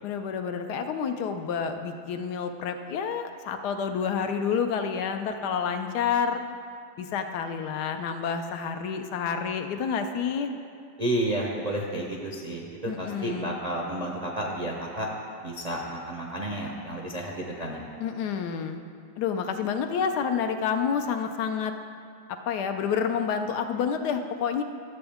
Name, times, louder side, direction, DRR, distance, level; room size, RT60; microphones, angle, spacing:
voice 1, 0.0-6.4 7.0-10.5 12.8-13.5 18.0-18.8 19.2-21.7 22.3-24.6, left 6 dB, 75° left, 6 dB, 1.1 m, -29 dB
voice 2, 11.0-15.1 15.4-17.9, right 1 dB, 45° right, -2 dB, 0.5 m, -31 dB
12.5 x 7.8 x 3.5 m, 2.3 s
omnidirectional pair, 1.8 m